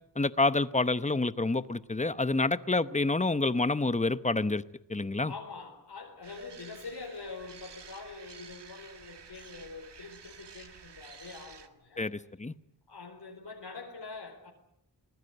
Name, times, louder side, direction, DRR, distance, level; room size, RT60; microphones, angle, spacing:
voice 1, 0.2-4.6 4.9-5.3 12.0-12.5, left 2 dB, 15° left, 14 dB, 0.9 m, -28 dB
voice 2, 5.3-12.1 12.9-14.5, left 4 dB, 80° left, 0 dB, 4.2 m, -44 dB
sound 1, 6.2-11.7, right 6 dB, 80° right, 1.8 m, -51 dB
23.5 x 20.0 x 7.9 m, 0.76 s
wide cardioid pair, 85°, 41 cm